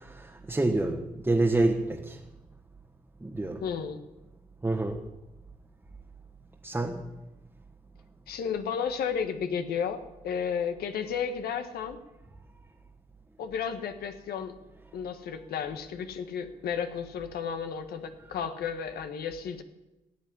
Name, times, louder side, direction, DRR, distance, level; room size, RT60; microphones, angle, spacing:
voice 1, 0.5-2.2 3.2-3.6 4.6-5.0 6.6-7.0, right 2 dB, 15° right, 1 dB, 1.5 m, -27 dB
voice 2, 3.6-4.0 8.3-12.0 13.4-14.5 14.9-19.6, left 7 dB, 80° left, 8 dB, 1.4 m, -33 dB
15.5 x 8.0 x 9.8 m, 1.0 s
cardioid pair, 85°, 16 cm